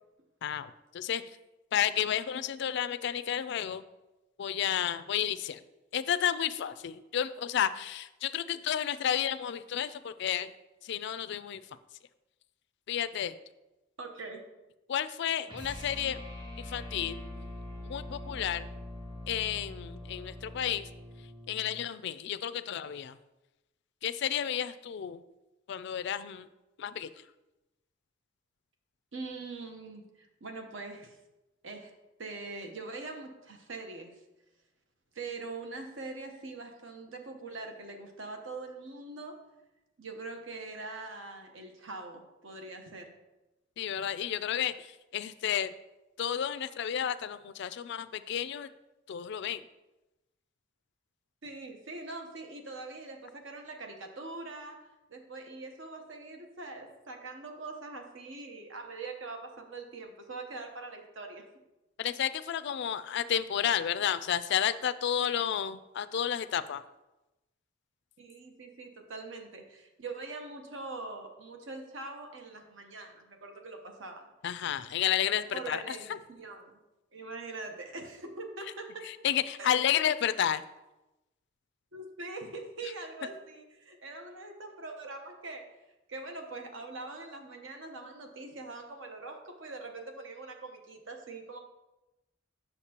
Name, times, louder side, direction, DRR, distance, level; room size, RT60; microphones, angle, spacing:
voice 1, 0.4-1.2 1.7-3.8 4.4-5.6 5.9-10.5 10.8-11.6 12.9-13.3 14.9-16.2 16.6-17.2 17.8-18.7 19.3-20.9 21.5-23.2 24.0-25.2 25.7-26.5 26.8-27.1 43.8-45.7 46.2-48.7 49.1-49.6 62.0-66.8 74.4-76.2 79.0-80.6, left 9 dB, 60° left, 13 dB, 0.3 m, -31 dB
voice 2, 14.0-14.4 29.1-31.2 31.6-31.9 32.2-34.1 35.1-39.3 40.0-43.0 51.4-54.8 55.1-61.4 68.2-74.3 75.5-76.7 77.1-79.1 79.6-79.7 81.9-85.6 86.1-91.6, right 3 dB, 70° right, 4 dB, 1.0 m, -43 dB
sound 1, 15.5-21.8, left 1 dB, 25° right, 1.1 m, -43 dB
8.2 x 6.5 x 2.9 m, 1.0 s
head